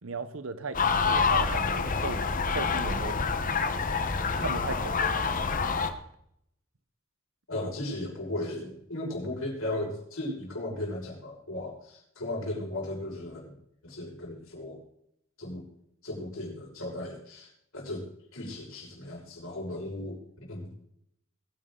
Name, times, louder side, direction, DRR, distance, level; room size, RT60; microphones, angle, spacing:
voice 1, 0.0-2.2 2.5-3.2 4.4-5.0, right 3 dB, 70° right, 1.0 m, -36 dB
sound 1, 0.7-5.9, left 5 dB, 40° left, 1.1 m, -27 dB
voice 2, 7.5-13.5 13.8-14.8 15.4-15.7 16.0-18.1 18.3-20.7, left 1 dB, 75° left, 5.8 m, -36 dB
21.0 x 9.9 x 3.9 m
head